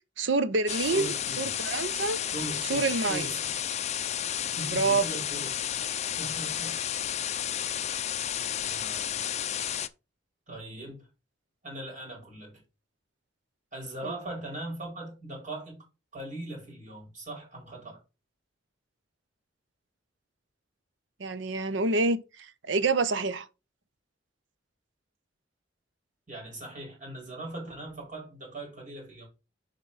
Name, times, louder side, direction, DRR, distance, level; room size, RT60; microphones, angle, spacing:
voice 1, 0.2-2.2 2.7-3.3 4.7-5.0 14.0-14.1 21.2-22.2 22.7-23.5, right 3 dB, 70° right, 0.7 m, -27 dB
sound 1, 0.7-9.9, left 10 dB, 35° left, 0.4 m, -32 dB
voice 2, 0.8-1.5 2.3-3.5 4.6-5.6 6.2-6.8 8.6-9.2 10.5-11.1 11.6-12.6 13.7-15.8 16.1-18.0 26.3-29.3, right 2 dB, 45° right, 4.4 m, -40 dB
7.0 x 5.2 x 4.1 m
head